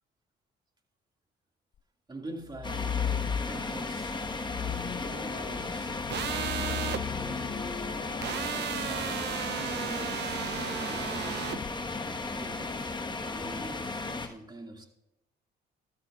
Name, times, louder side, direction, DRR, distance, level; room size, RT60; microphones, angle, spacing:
voice 1, 2.1-4.3 4.6-6.0 6.5-7.6 8.2-11.5 12.3-14.9, right 2 dB, 20° right, 2.1 m, -46 dB
sound 1, 2.5-3.9 4.4-9.9 11.4-11.7, left 9 dB, 40° left, 0.5 m, -37 dB
sound 2, 2.6-14.3, left 3 dB, 20° left, 1.4 m, -35 dB
sound 3, 6.1-7.0 8.2-11.6, right 11 dB, 55° right, 0.5 m, -34 dB
14.5 x 13.0 x 2.4 m
supercardioid pair, 70°, 21 cm